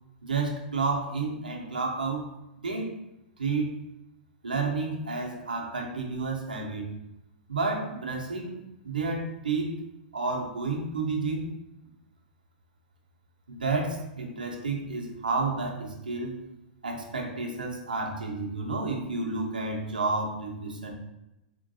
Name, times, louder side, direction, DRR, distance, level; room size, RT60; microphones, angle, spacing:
voice 1, 0.2-2.3 2.6-2.9 3.4-3.8 4.4-6.9 7.5-9.8 10.1-11.5 13.5-16.4 16.8-20.9, right 3 dB, 80° right, 0 dB, 0.8 m, -31 dB
4.4 x 2.6 x 2.7 m, 0.91 s
figure-of-eight pair, 100°, 5 cm